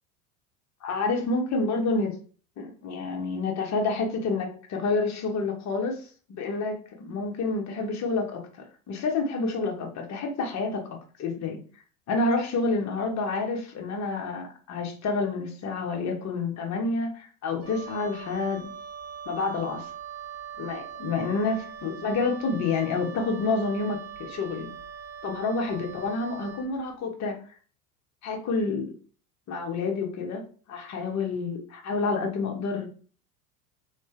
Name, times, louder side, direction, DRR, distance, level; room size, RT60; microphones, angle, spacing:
voice 1, 0.8-2.1 2.6-6.0 6.3-8.4 8.9-11.6 12.1-18.7 19.3-19.9 20.6-24.7 25.2-27.4 28.2-28.9 29.5-30.4 30.7-32.9, left 3 dB, 40° left, 2 dB, 1.2 m, -28 dB
Wind instrument woodwind instrument, 17.6-26.7, right 8 dB, 75° right, 1.2 m, -42 dB
3.3 x 3.1 x 3.3 m, 0.40 s
hypercardioid pair, 80°, 43 cm